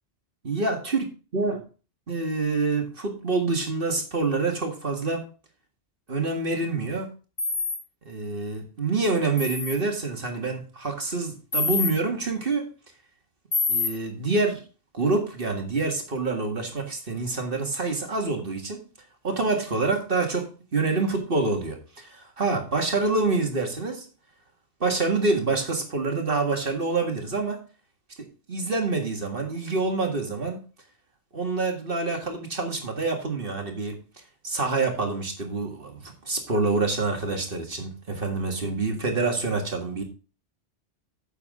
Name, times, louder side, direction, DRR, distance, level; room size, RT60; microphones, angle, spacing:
voice 1, 0.4-1.0 1.3-1.6 2.1-5.3 6.1-7.1 8.1-12.7 13.7-14.6 14.9-18.9 19.2-24.1 24.8-27.7 28.2-30.6 31.3-34.0 34.4-40.0, right 3 dB, 50° right, 2.1 m, -27 dB
sound 1, 7.4-7.8 9.4-9.7 11.5-11.9 13.5-13.9, left 4 dB, 35° left, 2.3 m, -25 dB
9.5 x 7.1 x 3.7 m
omnidirectional pair, 1.2 m